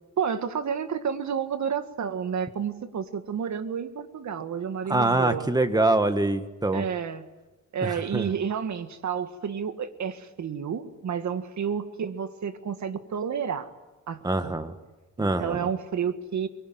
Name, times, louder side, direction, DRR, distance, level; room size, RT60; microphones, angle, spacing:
voice 1, 0.2-5.5 6.7-7.2 7.7-13.7 14.1-14.5 15.2-16.5, right 7 dB, 65° right, 9 dB, 1.9 m, -30 dB
voice 2, 4.9-6.8 7.8-8.3 14.2-14.7 15.2-15.7, right 2 dB, 10° right, 9 dB, 1.6 m, -24 dB
23.5 x 23.5 x 9.3 m, 1.1 s
wide cardioid pair, 130°, 31 cm